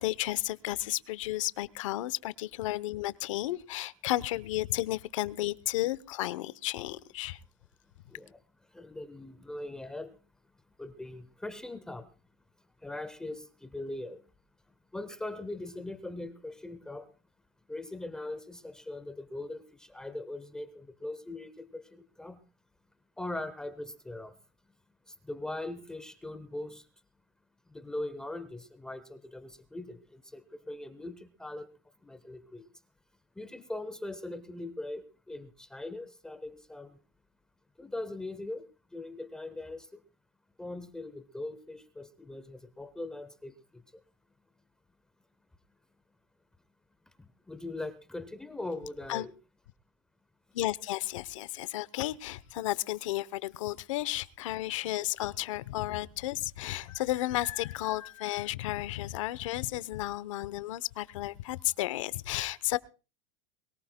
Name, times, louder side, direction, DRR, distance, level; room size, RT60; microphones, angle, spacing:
voice 1, 0.0-7.4 49.1-49.3 50.5-62.8, left 16 dB, 75° left, 0.8 m, -33 dB
voice 2, 8.1-8.4 8.7-10.1 10.8-12.1 12.8-14.2 14.9-17.1 17.7-22.4 23.2-24.4 25.2-26.8 27.7-31.7 32.0-32.6 33.4-37.0 37.8-38.7 38.9-39.9 40.6-43.5 47.2-49.3, left 2 dB, 5° left, 0.7 m, -40 dB
22.0 x 18.5 x 2.2 m
supercardioid pair, 175°, 16 cm